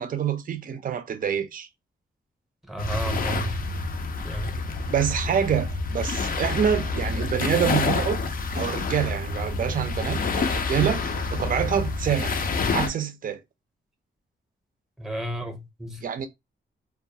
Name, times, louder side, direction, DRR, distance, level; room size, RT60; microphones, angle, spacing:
voice 1, 0.0-1.7 4.9-8.2 8.5-12.5 12.7-13.4 16.0-16.3, right 8 dB, 45° right, 0.4 m, -26 dB
voice 2, 2.6-3.6 4.2-4.6 15.0-16.0, right 1 dB, ahead, 0.7 m, -33 dB
sound 1, 2.8-12.9, left 4 dB, 45° left, 0.4 m, -28 dB
2.2 x 2.2 x 2.7 m
cardioid pair, 90°, 20 cm